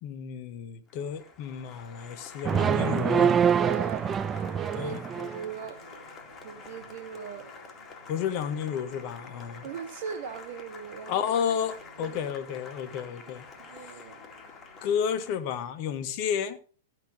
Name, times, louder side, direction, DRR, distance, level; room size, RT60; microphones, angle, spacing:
voice 1, 0.0-3.4 4.7-5.0 8.1-9.6 11.1-13.4 14.8-16.6, left 8 dB, 45° left, 1.5 m, -31 dB
Applause, 0.9-15.7, left 5 dB, 20° left, 2.3 m, -48 dB
sound 1, 1.4-15.3, right 1 dB, 75° right, 2.9 m, -53 dB
sound 2, 2.4-5.4, right 8 dB, 20° right, 0.4 m, -25 dB
voice 2, 3.6-5.9 6.4-7.5 9.6-11.3 12.0-12.2 13.1-14.2, right 7 dB, 50° right, 1.3 m, -39 dB
14.5 x 5.5 x 6.4 m
figure-of-eight pair, 100°, 0 cm